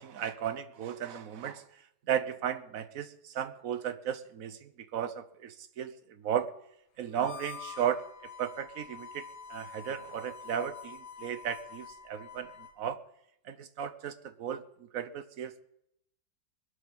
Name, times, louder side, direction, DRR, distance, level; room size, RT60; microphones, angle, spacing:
voice 1, 0.0-1.6 2.1-6.5 7.0-13.0 13.4-14.6 14.9-15.6, right 9 dB, 60° right, 12 dB, 1.2 m, -35 dB
Harmonica, 7.1-12.8, left 6 dB, 70° left, 1.8 m, -47 dB
21.5 x 8.2 x 5.5 m, 0.76 s
omnidirectional pair, 1.8 m